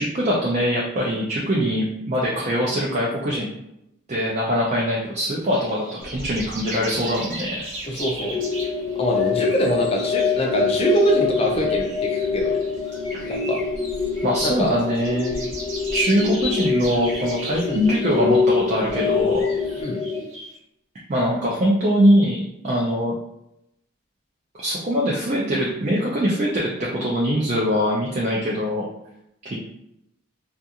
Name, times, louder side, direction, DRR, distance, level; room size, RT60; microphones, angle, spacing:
voice 1, 0.0-3.5 4.1-7.6 13.1-13.2 14.2-15.4 15.9-19.5 21.1-23.1 24.6-28.8 29.4-29.6, equal, 35° right, -4 dB, 0.4 m, -22 dB
sound 1, 5.4-20.6, right 1 dB, 75° right, 0.8 m, -39 dB
sound 2, 6.0-19.8, left 1 dB, 75° left, 0.9 m, -40 dB
voice 2, 7.8-8.3 9.0-12.6 13.3-13.6 14.4-14.8 17.6-17.8 19.8-20.0, right 1 dB, 30° left, 0 dB, 0.4 m, -23 dB
sound 3, 8.3-20.2, left 5 dB, ahead, 0.8 m, -25 dB
2.4 x 2.3 x 2.8 m, 0.82 s
head